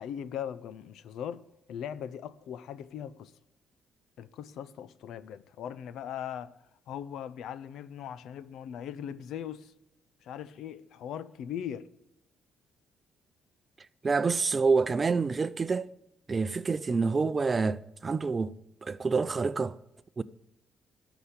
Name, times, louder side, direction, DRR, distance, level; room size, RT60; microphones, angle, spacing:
voice 1, 0.0-3.3 4.2-6.5 6.9-9.7 10.2-11.9, left 9 dB, 80° left, 0.6 m, -39 dB
voice 2, 14.0-15.9 16.3-19.8 20.2-20.3, right 4 dB, 35° right, 0.5 m, -27 dB
12.5 x 6.0 x 8.3 m
cardioid pair, 90°, 0 cm